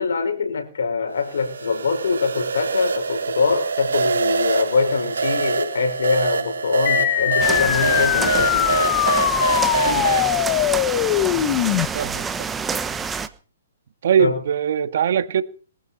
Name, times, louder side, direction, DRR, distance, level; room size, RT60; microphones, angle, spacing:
voice 1, 0.0-9.1 14.2-14.4, left 4 dB, 75° left, 5.1 m, -23 dB
sound 1, 1.2-10.3, right 5 dB, 85° right, 3.6 m, -25 dB
sound 2, 6.9-11.9, left 14 dB, 35° left, 1.4 m, -21 dB
sound 3, 7.4-13.3, right 5 dB, 10° right, 1.1 m, -28 dB
voice 2, 11.9-12.2 14.0-15.4, right 8 dB, 60° right, 1.8 m, -21 dB
22.5 x 14.5 x 4.3 m
hypercardioid pair, 150°, 0 cm